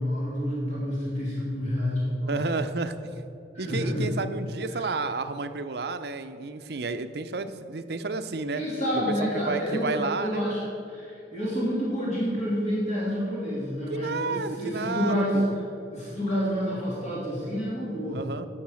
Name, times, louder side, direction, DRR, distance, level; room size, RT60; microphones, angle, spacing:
voice 1, 0.0-2.4 3.5-4.1 4.7-4.9 8.5-15.4 15.9-18.2, equal, 40° left, -7 dB, 2.5 m, -29 dB
voice 2, 2.3-2.9 3.6-8.6 9.3-10.5 13.9-15.5 18.1-18.5, right 3 dB, 60° right, 10 dB, 0.6 m, -31 dB
10.5 x 6.5 x 6.3 m, 2.7 s
head